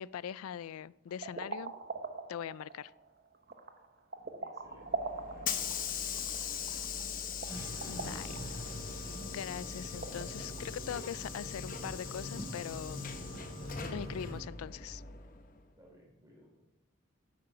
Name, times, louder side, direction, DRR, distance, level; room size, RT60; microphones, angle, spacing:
voice 1, 0.0-1.7 2.3-2.9 7.4-8.4 8.9-13.1 13.8-15.0, left 8 dB, 90° left, 21 dB, 0.3 m, -42 dB
sound 1, 1.1-10.6, right 3 dB, 45° right, 0.8 m, -43 dB
voice 2, 4.4-6.7 15.7-16.7, equal, 15° right, -2 dB, 3.5 m, -61 dB
Hiss / Sliding door, 4.7-15.6, left 7 dB, 40° left, 0.9 m, -41 dB
sound 2, 7.5-14.4, equal, 70° right, 4.7 m, -44 dB
8.8 x 8.7 x 5.7 m, 0.95 s
head